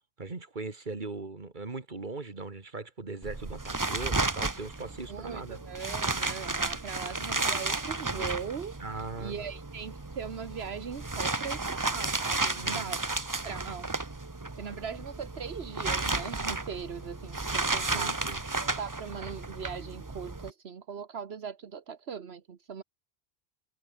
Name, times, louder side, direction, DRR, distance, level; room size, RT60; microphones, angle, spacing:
voice 1, 0.2-5.6 8.8-9.5 12.5-12.9 17.8-18.4, right 3 dB, 45° right, 2.3 m, -39 dB
sound 1, 3.2-20.5, right 3 dB, 20° right, 0.9 m, -33 dB
voice 2, 5.1-8.8 9.2-13.0 13.4-13.9 14.5-18.3 18.6-22.8, right 6 dB, 75° right, 1.4 m, -40 dB
omnidirectional pair, 1.1 m